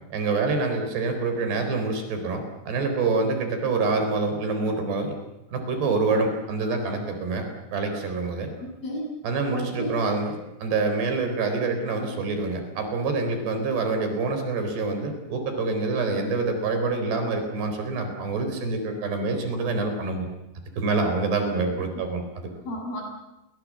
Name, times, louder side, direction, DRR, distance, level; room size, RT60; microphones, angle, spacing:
voice 1, 0.1-5.2 5.5-7.5 7.7-8.5 9.2-20.3 20.8-22.5, right 3 dB, 70° right, 6 dB, 6.2 m, -26 dB
voice 2, 8.6-9.1 9.5-9.9 22.0-22.1 22.7-23.0, equal, 60° left, 2 dB, 9.2 m, -33 dB
30.0 x 24.0 x 7.6 m, 0.97 s
omnidirectional pair, 4.9 m